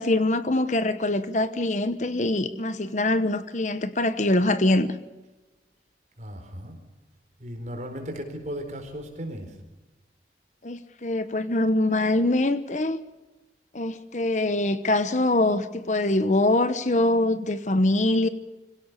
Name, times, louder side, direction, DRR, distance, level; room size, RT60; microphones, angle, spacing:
voice 1, 0.0-5.0 10.6-13.0 13.7-18.3, left 2 dB, 40° left, 12 dB, 1.1 m, -23 dB
voice 2, 6.2-6.8 7.4-9.5, equal, 40° right, 4 dB, 4.5 m, -36 dB
25.0 x 17.0 x 6.9 m, 1.1 s
head